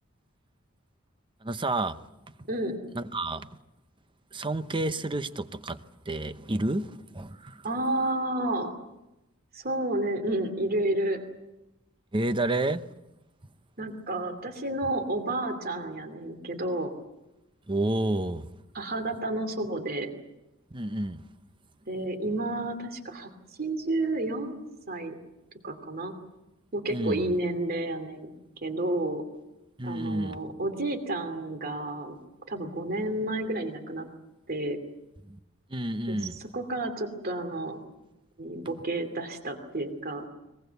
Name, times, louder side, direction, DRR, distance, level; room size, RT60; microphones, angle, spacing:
voice 1, 1.4-2.0 2.9-3.5 4.3-7.7 12.1-12.9 17.7-18.5 20.7-21.2 26.9-27.4 29.8-30.4 35.2-35.4 35.7-36.4, right 2 dB, 25° right, 0.8 m, -30 dB
voice 2, 2.5-2.8 7.6-8.7 9.5-11.2 13.8-16.9 18.7-20.1 21.9-23.3 23.6-24.6 24.9-25.1 25.6-26.1 26.7-28.3 28.6-29.2 29.8-32.2 32.5-34.1 34.5-34.8 36.1-36.2 36.5-37.8 38.4-40.2, right 1 dB, 45° right, 2.7 m, -30 dB
22.5 x 21.5 x 8.1 m
head